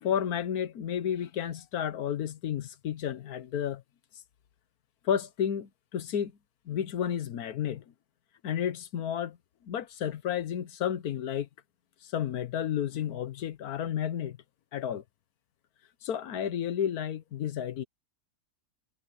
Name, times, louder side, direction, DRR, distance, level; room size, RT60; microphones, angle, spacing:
voice 1, 0.0-3.8 5.0-6.3 6.7-7.8 8.4-9.4 9.6-11.5 12.0-14.4 14.7-15.0 16.0-17.8, left 9 dB, 85° left, 1.4 m, -31 dB
omnidirectional pair, 1.6 m